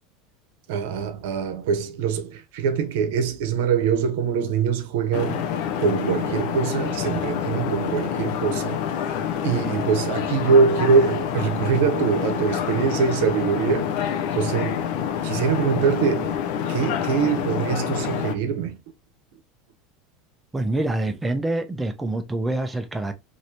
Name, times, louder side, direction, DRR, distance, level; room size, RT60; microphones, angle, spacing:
voice 1, 0.7-8.8 9.4-14.8 15.2-16.4 16.7-18.8, right 6 dB, 75° right, 0.7 m, -23 dB
sound 1, 5.1-18.3, left 8 dB, 65° left, 0.5 m, -27 dB
voice 2, 20.5-23.1, right 2 dB, 10° right, 0.5 m, -26 dB
3.1 x 2.6 x 2.7 m
supercardioid pair, 140°, 0 cm